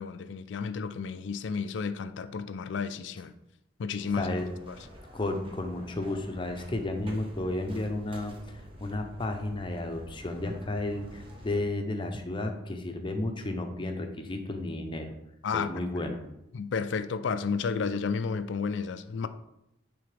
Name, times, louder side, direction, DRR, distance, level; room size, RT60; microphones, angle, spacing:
voice 1, 0.0-3.4 3.8-4.3 4.7-4.8 15.4-15.7 16.5-19.3, left 5 dB, 65° left, 0.4 m, -32 dB
sound 1, 4.0-11.6, equal, 25° right, 1.1 m, -48 dB
voice 2, 4.2-4.5 5.1-15.1 15.5-16.2, left 2 dB, 25° left, 0.6 m, -33 dB
9.3 x 3.5 x 3.3 m
head